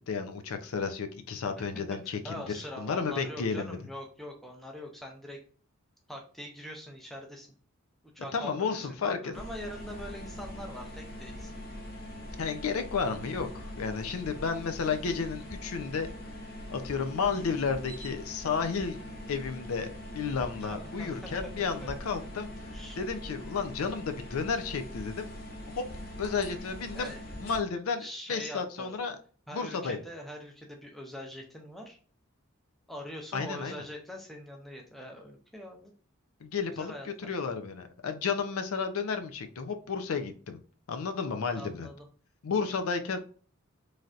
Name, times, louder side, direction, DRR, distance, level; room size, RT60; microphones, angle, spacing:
voice 1, 0.0-3.8 8.3-9.3 12.4-16.1 16.7-19.0 19.3-22.5 23.0-25.3 25.8-25.9 26.2-27.1 27.4-29.2 29.5-30.0 33.3-33.8 36.4-40.6 40.9-41.9 42.4-43.2, left 5 dB, 80° left, 0.4 m, -32 dB
voice 2, 1.9-5.4 6.1-7.5 8.1-11.6 20.6-21.9 22.7-23.0 26.9-27.2 28.0-29.0 29.5-32.0 32.9-35.9 36.7-37.3 41.5-41.9, equal, ahead, 0.5 m, -43 dB
sound 1, 9.3-27.6, left 1 dB, 45° left, 0.7 m, -42 dB
3.2 x 2.7 x 2.4 m
head